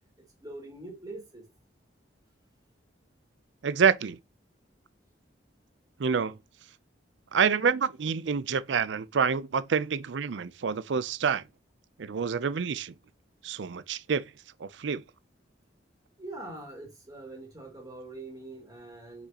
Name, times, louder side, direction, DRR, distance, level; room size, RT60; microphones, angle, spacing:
voice 1, 0.4-1.5 16.2-19.3, right 2 dB, 20° right, 2.3 m, -43 dB
voice 2, 3.6-4.2 6.0-6.4 7.3-11.5 12.0-12.9 13.4-14.2 14.6-15.0, right 6 dB, 75° right, 0.5 m, -27 dB
6.1 x 5.6 x 2.9 m
head